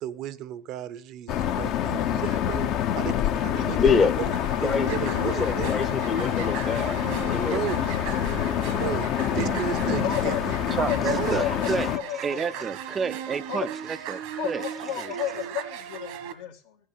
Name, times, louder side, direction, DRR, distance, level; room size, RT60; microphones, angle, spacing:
voice 1, 0.0-5.9 7.4-7.9 8.8-9.1 9.3-10.6 11.2-11.4, right 11 dB, 60° right, 0.8 m, -34 dB
sound 1, 1.3-12.0, left 10 dB, 65° left, 0.9 m, -26 dB
voice 2, 3.8-4.1 4.6-7.6, left 5 dB, 35° left, 0.8 m, -26 dB
sound 2, 4.3-16.3, right 9 dB, 80° right, 1.6 m, -37 dB
voice 3, 10.0-10.4 10.8-12.6 13.5-13.7 14.4-16.8, left 10 dB, 90° left, 2.0 m, -32 dB
voice 4, 10.7-15.2, right 5 dB, 30° right, 0.4 m, -31 dB
15.0 x 5.4 x 6.8 m
supercardioid pair, 100°, 0 cm